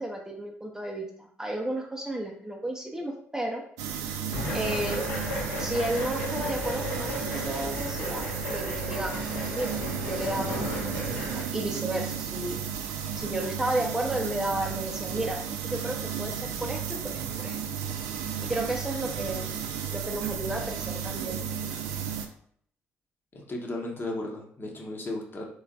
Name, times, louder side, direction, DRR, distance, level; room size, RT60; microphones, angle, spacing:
voice 1, 0.0-3.6 4.5-5.1 5.6-12.6 13.2-15.4 15.7-17.6 18.4-19.5 19.9-21.4, right 1 dB, 10° right, 1 dB, 0.6 m, -33 dB
sound 1, 3.8-22.3, right 8 dB, 70° right, 0.3 m, -34 dB
sound 2, 4.3-11.4, left 2 dB, 75° left, 0.8 m, -35 dB
voice 2, 23.3-25.4, left 2 dB, 35° left, 0 dB, 0.8 m, -35 dB
3.2 x 3.0 x 2.5 m, 0.63 s
figure-of-eight pair, 45°, 6 cm